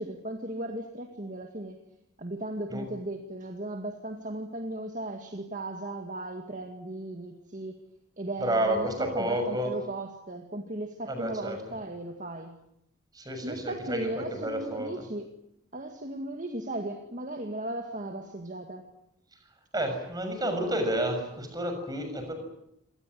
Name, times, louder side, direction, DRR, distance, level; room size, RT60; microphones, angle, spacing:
voice 1, 0.0-1.8 2.2-7.8 8.2-12.6 13.4-15.3 15.7-18.9, right 1 dB, 40° right, 5 dB, 2.0 m, -36 dB
voice 2, 8.4-9.7 11.1-11.6 13.1-14.9 19.7-22.3, right 1 dB, 20° right, 6 dB, 6.5 m, -30 dB
27.0 x 18.5 x 9.7 m, 0.79 s
head